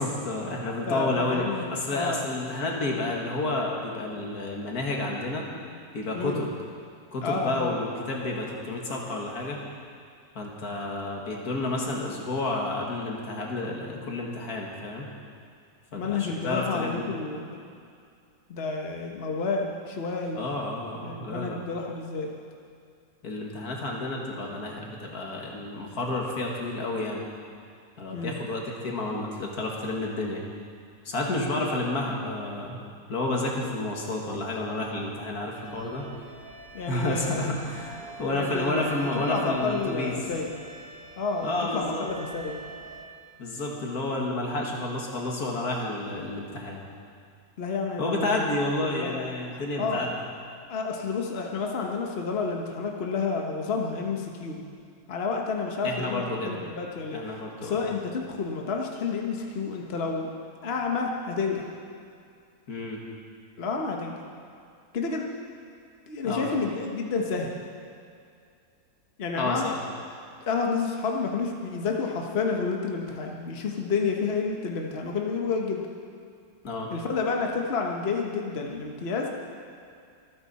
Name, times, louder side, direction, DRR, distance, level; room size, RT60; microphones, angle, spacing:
voice 1, 0.0-5.4 5.9-6.5 7.1-9.6 10.4-15.1 15.9-17.1 20.3-21.6 23.2-27.2 28.0-30.4 31.0-32.8 33.1-36.0 36.9-40.2 41.4-42.1 43.4-46.8 48.0-50.1 55.8-56.6 57.1-57.8 62.7-63.0 66.2-66.5 69.4-69.7 76.6-76.9, left 2 dB, 75° left, -1 dB, 2.3 m, -30 dB
voice 2, 0.9-1.7 1.9-2.2 6.1-6.4 7.2-7.7 16.0-17.5 18.5-20.5 21.0-22.3 28.1-28.4 36.7-37.4 38.3-40.5 41.2-42.6 47.6-48.5 48.8-49.3 49.5-50.1 50.7-54.6 55.1-57.2 57.6-60.3 60.6-61.7 63.6-64.2 64.9-65.3 66.1-67.5 69.2-69.7 70.5-75.9 76.9-79.3, left 4 dB, 45° left, 0 dB, 1.3 m, -30 dB
sound 1, 35.5-43.0, right 4 dB, 60° right, 1.7 m, -45 dB
24.5 x 9.4 x 4.2 m, 2.4 s
omnidirectional pair, 1.6 m